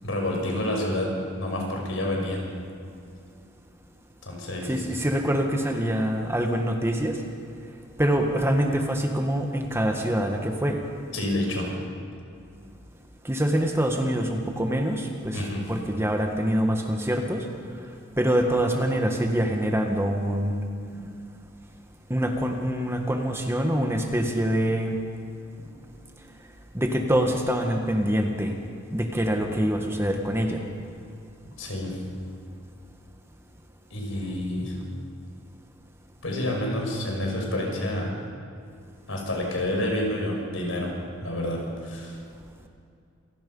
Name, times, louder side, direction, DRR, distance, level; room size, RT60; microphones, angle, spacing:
voice 1, 0.0-1.1 1.4-2.4 4.2-4.7 11.1-11.7 15.3-15.6 20.9-21.1 31.6-32.0 33.9-34.7 36.2-38.1 39.1-40.9 41.2-42.2, left 1 dB, 75° left, 0 dB, 6.0 m, -28 dB
voice 2, 4.6-7.2 8.0-10.8 13.2-17.5 18.2-20.6 22.1-25.0 26.7-28.5 28.9-30.6, equal, 10° right, 3 dB, 1.6 m, -25 dB
27.0 x 18.0 x 5.5 m, 2.4 s
head